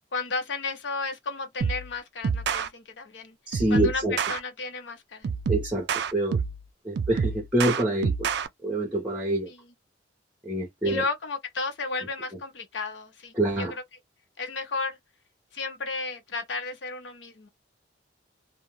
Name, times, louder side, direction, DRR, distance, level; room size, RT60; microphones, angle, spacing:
voice 1, 0.1-3.3 3.7-4.0 4.3-5.3 10.8-13.7 14.4-15.0 15.5-17.5, left 3 dB, 70° left, 0.7 m, -33 dB
sound 1, 1.6-1.9 2.2-2.7 3.5-4.4 5.2-6.6 7.0-8.5, right 6 dB, 60° right, 0.4 m, -27 dB
voice 2, 3.5-4.2 5.5-6.4 6.8-8.3 8.6-9.5 10.4-11.0 13.3-13.7, right 1 dB, 5° right, 0.8 m, -26 dB
2.3 x 2.1 x 3.1 m
head